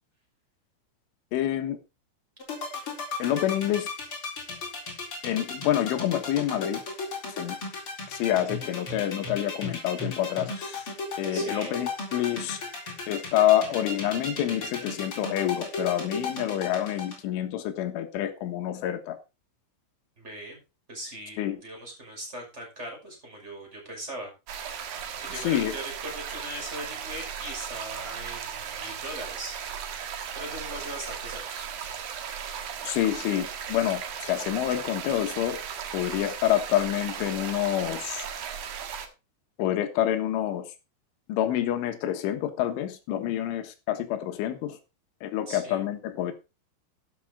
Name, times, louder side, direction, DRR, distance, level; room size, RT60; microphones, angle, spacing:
voice 1, 1.3-1.8 3.2-3.9 5.2-6.8 7.3-7.6 8.1-10.8 11.2-12.6 13.1-19.2 21.4-21.6 25.4-25.8 32.8-35.6 35.9-38.3 39.6-40.7 41.3-44.8 45.2-46.3, left 12 dB, 75° left, 3.8 m, -27 dB
sound 1, 2.4-17.2, left 3 dB, 30° left, 4.1 m, -34 dB
voice 2, 11.3-11.7 20.2-20.6 20.9-24.3 24.7-29.6 30.2-31.9 45.5-45.8, right 1 dB, 15° right, 5.9 m, -40 dB
sound 2, 24.5-39.1, right 8 dB, 60° right, 2.5 m, -36 dB
12.5 x 10.0 x 3.8 m
omnidirectional pair, 6.0 m